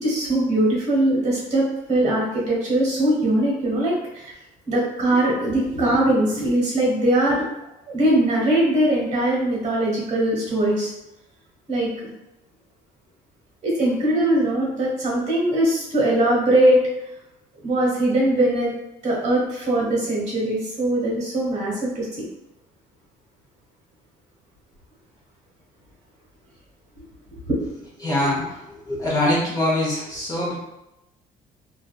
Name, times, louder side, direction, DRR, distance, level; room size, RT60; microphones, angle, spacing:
voice 1, 0.0-4.3 4.7-7.4 7.9-10.9 11.7-12.1 13.6-16.8 17.6-18.7 19.0-22.3 27.5-27.6, right 1 dB, 40° right, -4 dB, 1.2 m, -21 dB
voice 2, 28.0-30.5, left 1 dB, 20° left, -6 dB, 0.9 m, -23 dB
2.6 x 2.3 x 2.3 m, 0.91 s
cardioid pair, 110°, 17 cm